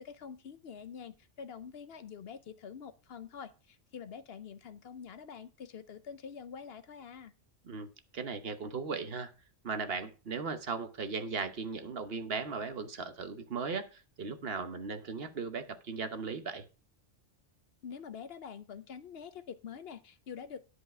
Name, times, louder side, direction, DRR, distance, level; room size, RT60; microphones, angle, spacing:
voice 1, 0.0-7.3 17.8-20.6, left 7 dB, 60° left, 13 dB, 0.8 m, -46 dB
voice 2, 8.1-9.3 9.6-16.6, right 4 dB, 55° right, 9 dB, 1.2 m, -37 dB
10.5 x 4.9 x 5.9 m, 0.33 s
omnidirectional pair, 1.2 m